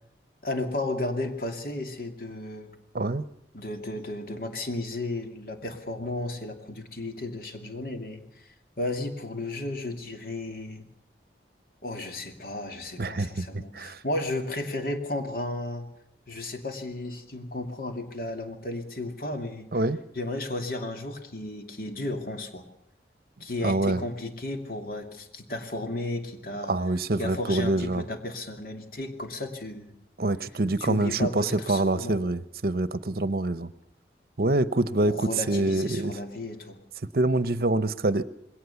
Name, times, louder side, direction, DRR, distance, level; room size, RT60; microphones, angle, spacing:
voice 1, 0.4-2.7 3.5-10.8 11.8-15.9 16.3-19.7 20.1-22.6 23.4-26.7 27.2-30.0 30.8-32.2 35.1-36.8, left 2 dB, 55° left, 5 dB, 2.7 m, -34 dB
voice 2, 13.0-13.5 13.7-14.0 19.7-20.0 23.6-24.0 26.7-28.0 30.2-33.7 34.4-36.1 37.1-38.2, right 2 dB, 60° right, 15 dB, 0.8 m, -25 dB
21.0 x 18.0 x 7.0 m, 0.78 s
head